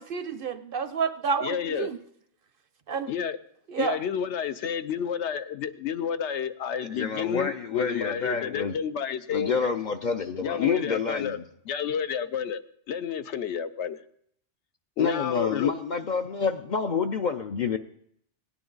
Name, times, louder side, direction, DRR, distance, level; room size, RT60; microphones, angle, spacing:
voice 1, 0.0-2.0 2.9-3.1 3.7-4.0, right 6 dB, 60° right, 0.7 m, -29 dB
voice 2, 1.4-1.9 3.1-3.4 3.8-9.5 10.4-11.4 11.7-14.0 15.0-15.7, left 7 dB, 75° left, 0.9 m, -30 dB
voice 3, 6.9-8.8 9.3-11.3 15.0-17.8, left 6 dB, 55° left, 0.6 m, -28 dB
17.5 x 10.0 x 3.9 m
omnidirectional pair, 1.2 m